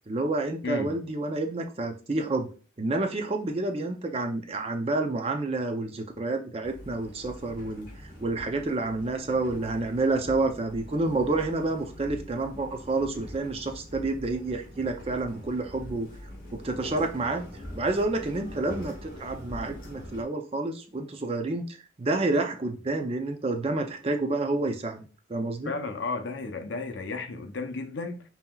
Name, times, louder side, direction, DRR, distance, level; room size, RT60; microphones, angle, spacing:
voice 1, 0.1-2.5 2.8-7.9 8.2-16.1 16.5-17.4 17.8-25.0 25.3-25.7, right 2 dB, 30° right, 0.4 m, -29 dB
voice 2, 0.6-0.9 25.6-28.2, left 3 dB, 65° left, 0.6 m, -33 dB
sound 1, 6.6-20.2, left 1 dB, 45° left, 1.6 m, -43 dB
5.5 x 2.8 x 2.3 m
head